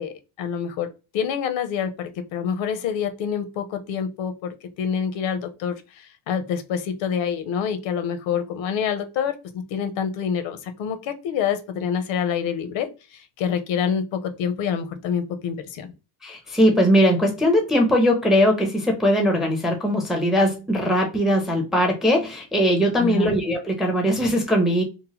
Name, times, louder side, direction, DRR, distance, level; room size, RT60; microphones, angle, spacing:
voice 1, 0.0-15.9 23.0-23.4, left 7 dB, 75° left, 9 dB, 0.7 m, -27 dB
voice 2, 16.2-24.8, equal, ahead, 3 dB, 0.4 m, -20 dB
2.9 x 2.1 x 2.8 m, 0.29 s
cardioid pair, 145°, 46 cm